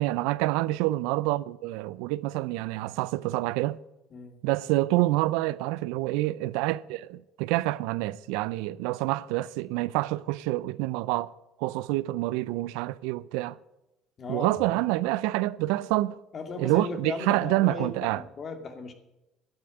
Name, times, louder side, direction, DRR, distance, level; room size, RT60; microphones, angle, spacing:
voice 1, 0.0-3.8 4.4-11.3 11.6-13.6 14.3-16.2 16.6-18.2, right 18 dB, 80° right, 0.4 m, -27 dB
voice 2, 14.2-14.8 16.3-18.9, left 4 dB, 45° left, 2.4 m, -37 dB
11.5 x 8.8 x 8.7 m
supercardioid pair, 75°, 0 cm